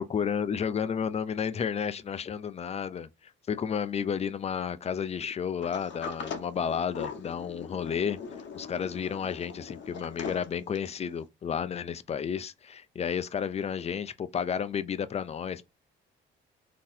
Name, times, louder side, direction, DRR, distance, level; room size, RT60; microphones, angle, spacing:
voice 1, 0.0-3.1 3.5-8.2 8.6-15.6, left 7 dB, 30° left, 0.4 m, -32 dB
Sliding door, 5.6-11.1, left 5 dB, 65° left, 0.7 m, -41 dB
3.7 x 2.8 x 2.6 m
cardioid pair, 90°, 20 cm